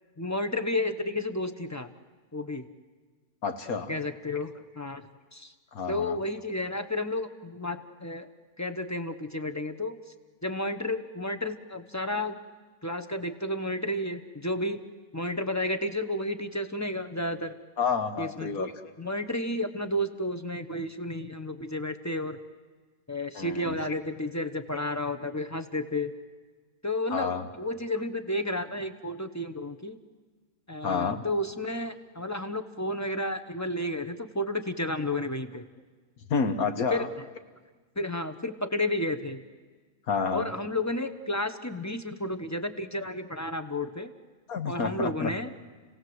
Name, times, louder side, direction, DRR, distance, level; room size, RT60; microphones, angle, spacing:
voice 1, 0.2-1.9 2.3-2.7 3.9-5.1 5.3-5.5 5.9-8.3 8.6-10.0 10.4-12.4 12.8-14.8 15.1-17.5 18.2-18.7 19.0-22.4 23.1-26.1 26.8-30.0 30.7-35.7 36.9-37.1 38.0-39.4 40.3-44.1 44.7-45.5, left 1 dB, 15° left, 9 dB, 0.9 m, -32 dB
voice 2, 3.4-4.0 5.7-6.2 17.8-18.7 23.4-23.8 27.1-27.5 30.8-31.2 36.3-37.1 40.1-40.5 44.5-45.3, left 5 dB, 70° left, 9 dB, 1.8 m, -29 dB
30.0 x 17.5 x 7.9 m, 1.4 s
omnidirectional pair, 1.6 m